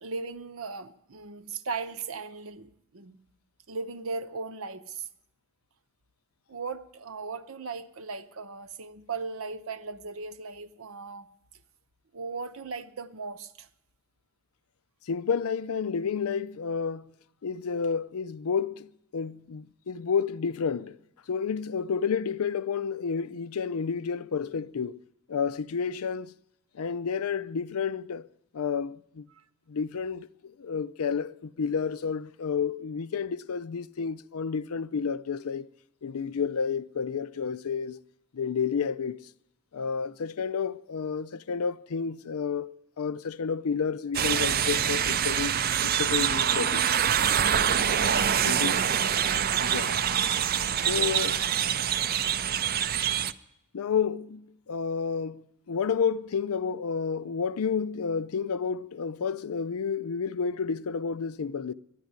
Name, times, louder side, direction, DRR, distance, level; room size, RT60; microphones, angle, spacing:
voice 1, 0.0-3.2 3.7-5.1 6.5-11.3 12.1-13.7, right 4 dB, 70° right, 0.8 m, -37 dB
voice 2, 15.1-17.1 17.4-21.0 21.3-25.0 25.3-26.3 26.8-28.3 28.5-29.2 29.7-35.7 36.0-38.0 38.3-39.2 39.7-45.5 45.8-46.9 48.4-48.8 49.6-50.0 50.8-51.4 53.7-61.7, left 6 dB, 80° left, 0.5 m, -30 dB
sound 1, 44.1-53.3, right 9 dB, 45° right, 0.4 m, -25 dB
11.5 x 10.0 x 9.4 m
head